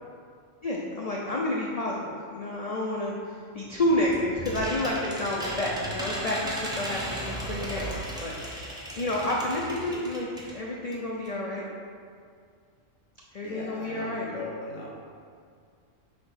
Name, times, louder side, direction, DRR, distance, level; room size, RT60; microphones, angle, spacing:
voice 1, 0.6-3.1 3.5-10.3 10.5-11.6 13.3-14.3, left 1 dB, 45° left, -3 dB, 0.5 m, -30 dB
sound 1, 3.7-10.6 10.9-11.0 11.2-11.3, equal, 5° right, 0.7 m, -36 dB
voice 2, 13.4-14.9, left 2 dB, 75° left, -3 dB, 1.5 m, -38 dB
6.4 x 2.9 x 5.6 m, 2.2 s
omnidirectional pair, 1.3 m